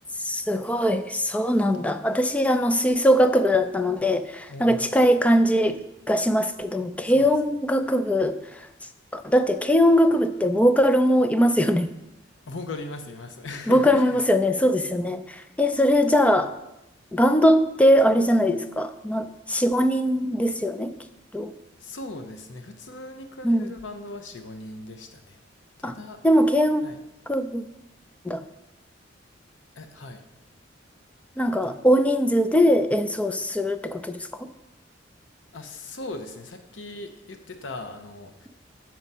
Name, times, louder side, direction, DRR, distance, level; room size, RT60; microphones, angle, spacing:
voice 1, 0.2-5.8 6.1-8.7 9.1-11.9 13.7-16.5 17.1-20.9 21.3-21.5 23.4-23.7 25.8-26.0 26.2-26.8 27.3-27.6 28.2-28.4 31.4-34.5, equal, 5° left, 10 dB, 0.4 m, -21 dB
voice 2, 4.5-4.9 7.0-7.3 12.5-14.2 21.8-25.5 25.8-26.2 26.8-27.0 29.7-30.3 31.6-31.7 35.5-38.5, left 2 dB, 80° left, 6 dB, 0.8 m, -39 dB
6.3 x 6.0 x 5.5 m, 0.92 s
head